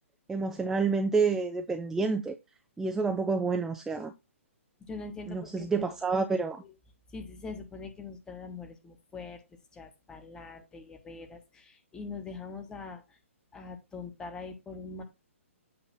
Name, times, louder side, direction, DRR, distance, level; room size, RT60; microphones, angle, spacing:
voice 1, 0.3-2.4 2.8-4.1 5.3-6.6, right 4 dB, 5° right, 0.4 m, -28 dB
voice 2, 4.9-6.0 6.6-6.7 7.1-9.4 9.7-13.0 13.5-15.0, left 4 dB, 10° left, 1.1 m, -43 dB
7.9 x 3.0 x 5.9 m
figure-of-eight pair, 125°, 7 cm